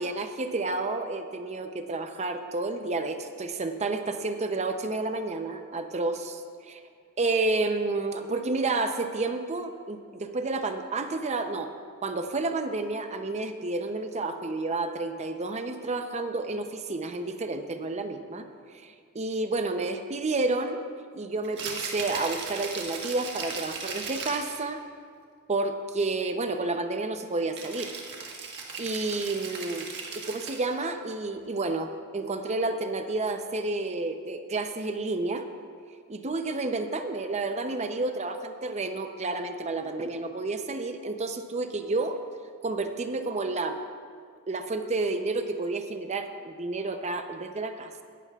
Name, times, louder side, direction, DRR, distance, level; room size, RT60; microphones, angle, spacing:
voice 1, 0.0-6.8 7.2-11.7 12.0-18.5 18.8-20.8 21.1-24.8 25.5-27.9 28.8-29.9 30.2-35.5 36.1-42.2 42.6-43.8 44.5-48.0, right 3 dB, 30° right, 7 dB, 0.6 m, -30 dB
Rattle (instrument), 21.4-24.6 27.5-30.8, right 4 dB, 50° right, 1.4 m, -37 dB
17.5 x 11.5 x 2.4 m, 2.1 s
head